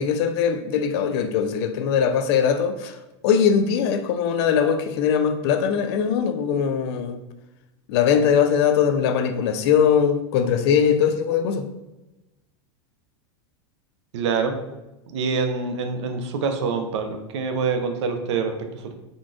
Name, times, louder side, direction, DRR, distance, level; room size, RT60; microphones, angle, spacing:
voice 1, 0.0-3.0 3.2-7.2 7.9-11.6, left 7 dB, 65° left, 8 dB, 0.4 m, -21 dB
voice 2, 14.1-14.6 15.1-18.9, right 5 dB, 80° right, 6 dB, 0.5 m, -26 dB
3.7 x 2.3 x 2.4 m, 0.99 s
supercardioid pair, 125°, 15 cm